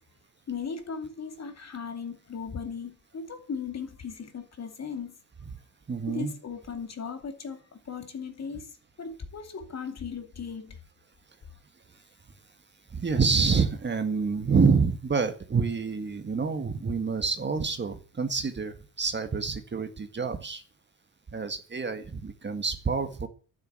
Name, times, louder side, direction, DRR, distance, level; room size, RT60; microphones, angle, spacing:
voice 1, 0.5-5.2 6.1-10.8, left 6 dB, 40° left, 2.6 m, -37 dB
voice 2, 5.9-6.3 12.9-20.6 21.3-23.3, right 5 dB, 25° right, 1.8 m, -27 dB
12.0 x 9.7 x 8.7 m
cardioid pair, 140°, 42 cm